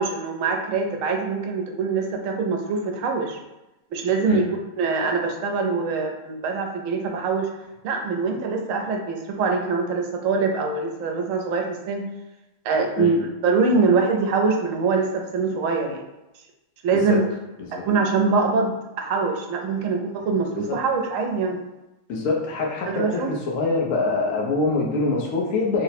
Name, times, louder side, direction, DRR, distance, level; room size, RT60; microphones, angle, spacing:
voice 1, 0.0-3.4 3.9-4.4 4.8-7.5 7.8-12.0 12.6-16.0 16.8-17.2 17.8-21.6 22.9-23.3, right 4 dB, 85° right, 2 dB, 1.0 m, -23 dB
voice 2, 22.1-25.8, left 3 dB, 80° left, -1 dB, 1.1 m, -25 dB
3.2 x 2.0 x 4.1 m, 0.97 s
omnidirectional pair, 1.3 m